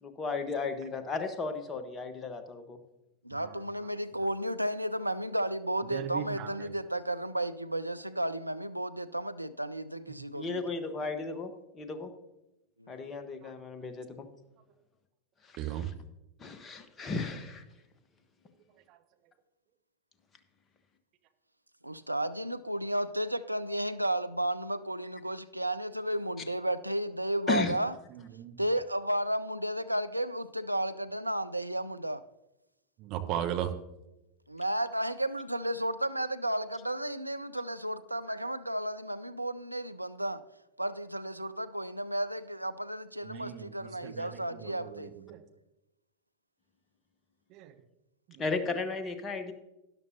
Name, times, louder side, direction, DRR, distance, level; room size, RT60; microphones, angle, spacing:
voice 1, 0.0-2.8 10.4-12.1 12.9-14.3 15.5-15.9 16.4-17.6 27.5-27.7 48.4-49.5, left 4 dB, 20° left, 8 dB, 1.2 m, -35 dB
voice 2, 3.2-10.6 12.8-13.1 21.8-28.0 28.6-32.2 34.5-40.4 40.8-45.1, right 1 dB, 85° right, 12 dB, 0.4 m, -33 dB
voice 3, 5.9-6.7 15.6-15.9 18.9-19.0 28.1-28.6 33.0-33.7 43.2-45.4 47.5-47.8 48.3-48.4, right 11 dB, 40° right, 6 dB, 1.1 m, -37 dB
12.5 x 11.0 x 2.8 m, 0.95 s
figure-of-eight pair, 90°, 0 cm